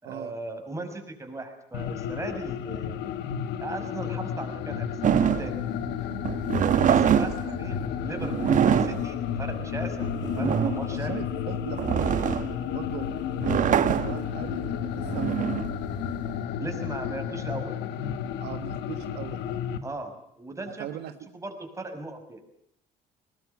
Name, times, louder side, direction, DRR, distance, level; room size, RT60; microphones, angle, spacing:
voice 1, 0.0-3.2 3.6-5.6 6.6-10.1 10.4-11.2 16.6-17.7 19.8-20.1 20.4-20.9 21.3-22.4, right 2 dB, 15° right, 5 dB, 5.7 m, -37 dB
sound 1, 1.7-19.8, left 9 dB, 90° left, 1.8 m, -32 dB
sound 2, 5.0-16.4, right 9 dB, 50° right, 1.2 m, -25 dB
voice 2, 6.7-7.7 10.8-13.1 13.4-15.6 18.4-19.6 20.6-21.1, right 11 dB, 80° right, 9 dB, 1.5 m, -40 dB
21.0 x 20.0 x 9.5 m, 0.75 s
cardioid pair, 110°, 17 cm